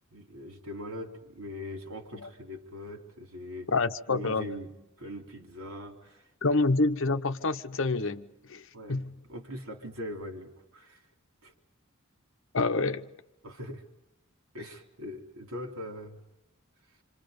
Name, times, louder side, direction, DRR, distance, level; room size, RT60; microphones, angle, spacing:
voice 1, 0.1-3.7 4.1-4.7 5.0-6.6 8.7-11.0 11.4-11.5 13.4-13.8 14.5-16.2, left 1 dB, 85° right, 3.8 m, -41 dB
voice 2, 3.7-4.5 6.4-8.6 8.9-9.1 12.5-13.1, left 3 dB, 65° left, 0.9 m, -27 dB
27.5 x 27.0 x 5.3 m
head